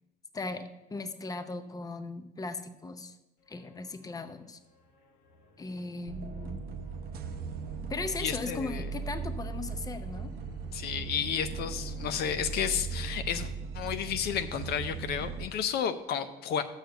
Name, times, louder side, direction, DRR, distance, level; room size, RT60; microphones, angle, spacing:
voice 1, 0.3-3.2 3.5-4.6 5.6-6.6 7.9-10.3, left 3 dB, 20° left, 9 dB, 0.7 m, -38 dB
sound 1, 3.4-13.5, left 2 dB, 85° left, 1.3 m, -55 dB
sound 2, 6.1-15.5, right 5 dB, 65° right, 0.6 m, -38 dB
voice 2, 8.2-8.9 10.7-16.6, left 8 dB, 70° left, 9 dB, 0.6 m, -32 dB
6.5 x 6.4 x 6.9 m, 0.99 s
cardioid pair, 110°, 17 cm